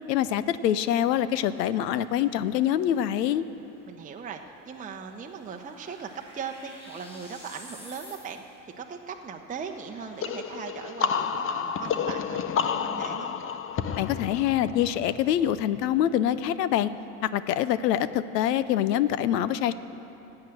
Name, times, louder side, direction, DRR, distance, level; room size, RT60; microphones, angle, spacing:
voice 1, 0.1-3.4 14.0-16.9 17.2-19.7, left 11 dB, 85° left, 15 dB, 0.6 m, -25 dB
sound 1, 1.3-8.7, left 1 dB, 10° left, 3.8 m, -52 dB
voice 2, 3.9-13.4, right 6 dB, 15° right, 3 dB, 0.8 m, -39 dB
sound 2, 10.2-15.8, left 7 dB, 30° left, 0.6 m, -30 dB
14.5 x 8.6 x 7.7 m, 3.0 s
hypercardioid pair, 85°, 48 cm